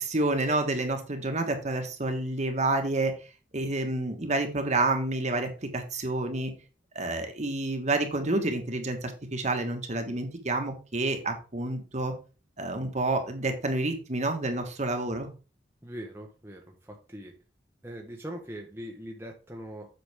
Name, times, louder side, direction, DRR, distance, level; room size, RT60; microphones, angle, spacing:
voice 1, 0.0-3.1 3.5-6.5 6.9-12.1 12.6-15.3, right 2 dB, 40° right, 5 dB, 1.4 m, -29 dB
voice 2, 15.8-17.3 17.8-19.9, equal, 15° right, 1 dB, 1.0 m, -41 dB
8.2 x 6.0 x 3.5 m, 0.33 s
head